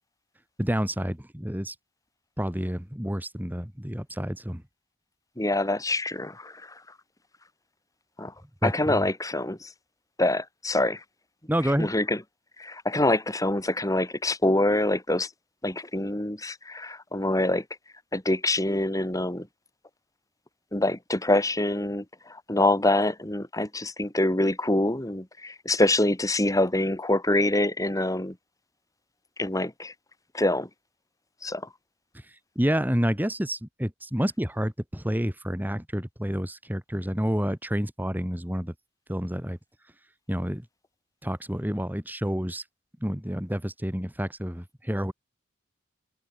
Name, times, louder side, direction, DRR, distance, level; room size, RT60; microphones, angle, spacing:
voice 1, 0.6-1.7 2.4-4.6 8.6-9.0 11.5-11.9 32.3-38.7 39.1-39.6 40.3-40.6 41.2-42.6 43.0-45.1, equal, 10° right, 2.7 m, -29 dB
voice 2, 5.4-6.7 8.2-8.3 8.6-9.7 10.2-11.0 11.8-12.2 12.6-15.3 15.6-17.6 18.1-19.5 20.7-28.3 29.4-29.9 30.3-30.7 31.4-31.6, left 1 dB, 20° left, 3.0 m, -25 dB
head